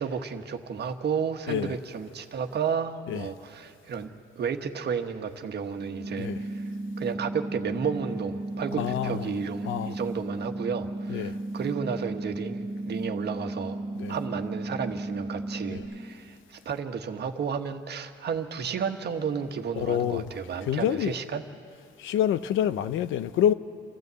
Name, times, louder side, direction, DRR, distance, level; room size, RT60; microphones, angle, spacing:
voice 1, 0.0-6.6 7.0-13.8 14.1-21.4, right 6 dB, 55° right, 1.4 m, -32 dB
sound 1, 5.8-15.8, right 2 dB, 60° left, 3.9 m, -34 dB
voice 2, 8.8-9.3 9.7-9.9 11.1-11.3 14.0-14.2 15.7-15.8 19.8-20.3 20.7-21.1 22.0-23.5, left 10 dB, 80° left, 0.7 m, -27 dB
29.0 x 13.5 x 8.3 m
cardioid pair, 90°, 20 cm